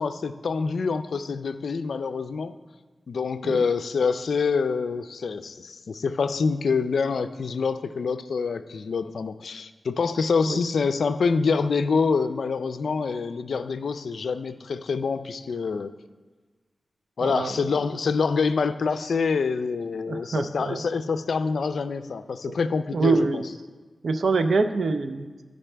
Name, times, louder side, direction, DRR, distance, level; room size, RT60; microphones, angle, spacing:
voice 1, 0.0-2.5 3.1-15.9 17.2-23.4, left 5 dB, 80° left, 11 dB, 0.4 m, -26 dB
voice 2, 17.2-17.5 20.1-20.8 22.5-22.6 22.9-23.5 24.0-25.3, right 3 dB, 75° right, 9 dB, 0.5 m, -24 dB
13.0 x 5.3 x 3.3 m, 1.3 s
cardioid pair, 60°, 0 cm